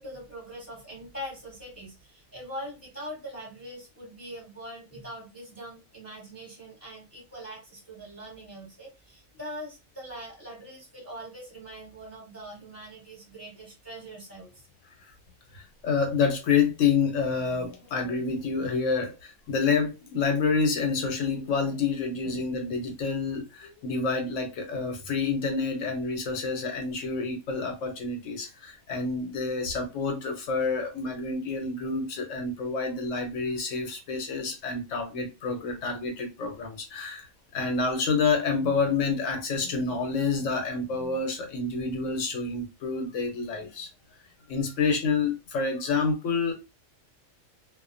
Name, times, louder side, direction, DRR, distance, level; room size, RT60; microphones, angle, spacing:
voice 1, 0.0-14.5, equal, 10° left, 0.9 m, -42 dB
voice 2, 15.5-37.3 37.5-43.9 44.5-46.5, left 4 dB, 70° left, 1.0 m, -28 dB
2.4 x 2.1 x 2.4 m
omnidirectional pair, 1.4 m